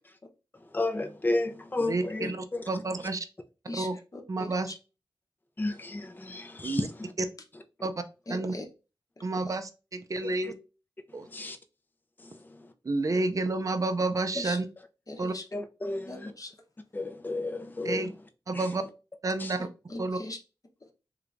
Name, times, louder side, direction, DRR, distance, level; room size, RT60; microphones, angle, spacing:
voice 1, 0.5-2.6 3.0-3.1 5.6-7.1 10.2-10.5 11.1-11.6 12.2-12.7 15.5-16.3 16.9-18.1 18.5-18.7 19.4-19.6, left 2 dB, 20° left, 0.5 m, -33 dB
voice 2, 1.8-3.3 3.8-4.0 4.3-4.7 6.6-6.9 7.8-8.0 8.3-8.5 9.2-10.5 11.1-11.3 12.8-14.7 15.2-15.3 17.8-18.1 18.5-18.8 19.2-19.6 20.0-20.2, right 2 dB, 40° right, 0.5 m, -30 dB
voice 3, 3.7-4.7 8.3-8.6 9.2-9.3 14.3-14.6 15.1-15.4 16.1-16.5 19.6-20.4, left 2 dB, 40° left, 0.8 m, -40 dB
3.3 x 3.1 x 2.5 m
cardioid pair, 50°, 9 cm